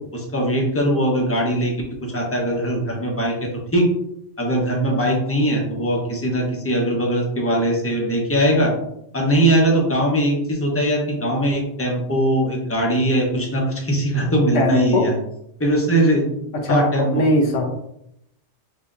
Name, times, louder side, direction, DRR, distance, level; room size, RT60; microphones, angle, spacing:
voice 1, 0.1-1.7 2.1-3.3 3.7-3.9 4.4-8.7 9.1-15.1 15.6-16.2 16.7-17.1, right 1 dB, 15° left, -1 dB, 0.8 m, -20 dB
voice 2, 14.5-15.1 16.5-17.7, left 1 dB, 90° left, 1 dB, 1.3 m, -20 dB
6.3 x 2.8 x 2.5 m, 0.77 s
omnidirectional pair, 1.2 m